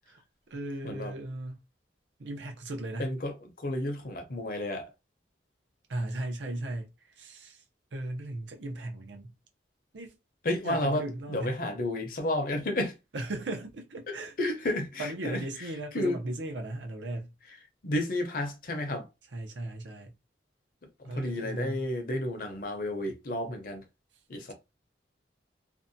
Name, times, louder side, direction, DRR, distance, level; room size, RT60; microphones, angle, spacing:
voice 1, 0.5-1.6 2.2-3.1 5.9-6.9 7.2-7.6 7.9-9.3 9.9-10.2 10.6-11.6 13.1-14.4 15.0-17.3 19.3-20.1 21.0-21.9, right 1 dB, 90° right, 0.6 m, -37 dB
voice 2, 3.0-3.3 3.6-4.9 10.4-11.0 11.3-12.9 14.1-15.4 15.9-16.2 17.8-19.1 21.0-23.8 24.3-24.5, left 1 dB, 50° left, 0.6 m, -31 dB
2.6 x 2.2 x 2.6 m
head